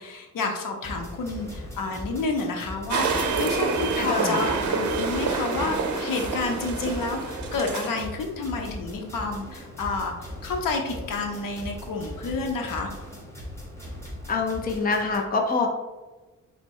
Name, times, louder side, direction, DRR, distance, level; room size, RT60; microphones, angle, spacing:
voice 1, 0.0-10.1 10.4-12.9, left 3 dB, 85° left, 3 dB, 0.8 m, -30 dB
sound 1, 0.8-15.2, left 1 dB, 10° left, 1.0 m, -39 dB
sound 2, 2.9-8.0, right 4 dB, 65° right, 0.7 m, -27 dB
voice 2, 4.0-4.4 14.3-15.7, left 4 dB, 30° left, 2 dB, 0.5 m, -25 dB
4.2 x 2.1 x 4.5 m, 1.2 s
wide cardioid pair, 160°, 32 cm